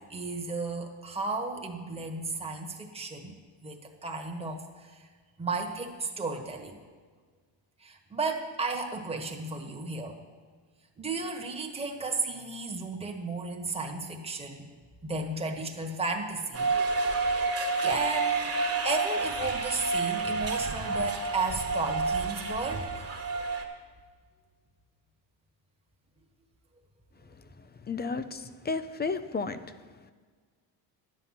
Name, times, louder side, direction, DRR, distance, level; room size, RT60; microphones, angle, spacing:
voice 1, 0.0-3.3 3.6-5.0 5.4-6.8 7.8-10.2 11.0-14.7 15.0-16.7 17.8-18.5 18.8-23.1, right 3 dB, 10° right, 2 dB, 1.3 m, -34 dB
sound 1, 16.5-23.6, right 3 dB, 30° right, 1.5 m, -29 dB
voice 2, 27.9-29.6, left 4 dB, 20° left, 12 dB, 0.4 m, -32 dB
10.5 x 7.7 x 5.7 m, 1.5 s
cardioid pair, 95°, 50 cm